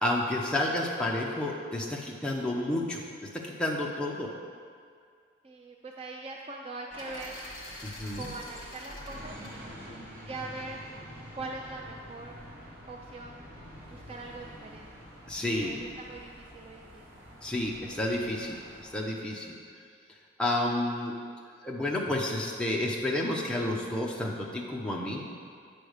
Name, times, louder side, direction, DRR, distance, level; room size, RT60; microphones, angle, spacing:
voice 1, 0.0-4.3 7.8-8.3 15.3-15.8 17.4-19.6 20.4-21.1 21.6-25.2, left 1 dB, 5° left, -3 dB, 0.7 m, -30 dB
voice 2, 5.4-7.3 8.1-9.6 10.2-10.8 11.3-12.4 12.9-13.5 13.9-14.9 15.6-17.1, right 3 dB, 30° right, 1 dB, 0.3 m, -42 dB
sound 1, 6.9-11.0, left 1 dB, 45° left, 1.7 m, -45 dB
sound 2, 9.1-18.9, equal, 45° right, 1.8 m, -47 dB
8.8 x 3.4 x 6.4 m, 2.2 s
head